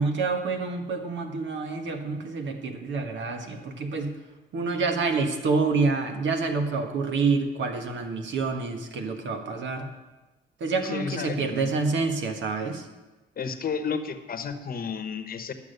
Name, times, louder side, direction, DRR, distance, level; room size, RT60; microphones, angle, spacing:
voice 1, 0.0-4.1 4.5-9.9 10.6-12.9, right 4 dB, 70° right, 5 dB, 1.5 m, -27 dB
voice 2, 10.8-11.7 13.4-15.5, left 6 dB, 45° left, 9 dB, 1.0 m, -32 dB
12.0 x 7.3 x 6.7 m, 1.2 s
cardioid pair, 90°, 20 cm